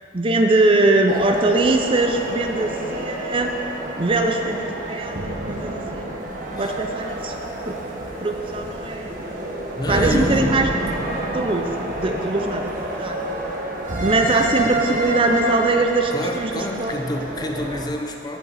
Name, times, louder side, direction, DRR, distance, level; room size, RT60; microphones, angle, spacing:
voice 1, 0.1-3.5 4.0-6.1 6.6-7.3 7.7-7.8 8.2-9.2 9.9-11.7 12.0-13.3 14.0-16.9, right 2 dB, 30° right, 4 dB, 0.5 m, -22 dB
sound 1, 1.1-17.9, right 1 dB, 45° right, 1.3 m, -28 dB
voice 2, 9.7-10.6 16.1-18.4, left 1 dB, 20° left, 3 dB, 0.7 m, -28 dB
16.5 x 5.6 x 4.1 m, 2.4 s
head